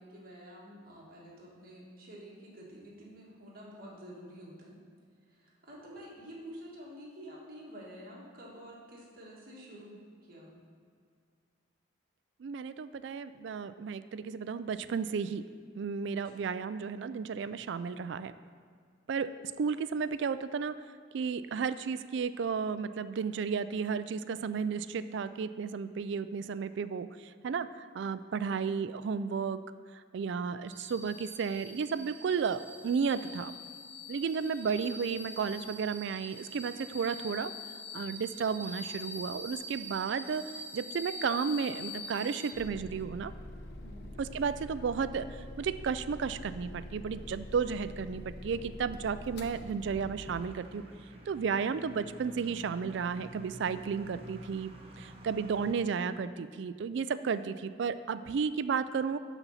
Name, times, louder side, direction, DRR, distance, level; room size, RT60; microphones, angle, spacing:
voice 1, 0.0-4.8 5.3-10.6 16.2-16.5 43.8-44.1, equal, 50° right, -5 dB, 2.0 m, -49 dB
voice 2, 12.4-15.4 15.8-18.3 19.1-20.8 21.1-29.6 29.9-33.5 34.1-37.5 37.9-40.4 40.7-43.3 44.2-50.8 51.3-54.7 55.0-59.2, right 6 dB, 65° right, 13 dB, 0.3 m, -33 dB
sound 1, 30.7-42.5, left 2 dB, 10° left, 0.7 m, -44 dB
sound 2, 42.5-50.6, left 1 dB, 55° left, 0.7 m, -45 dB
sound 3, 50.2-55.8, equal, 30° right, 0.7 m, -50 dB
12.0 x 4.1 x 5.6 m, 2.1 s
head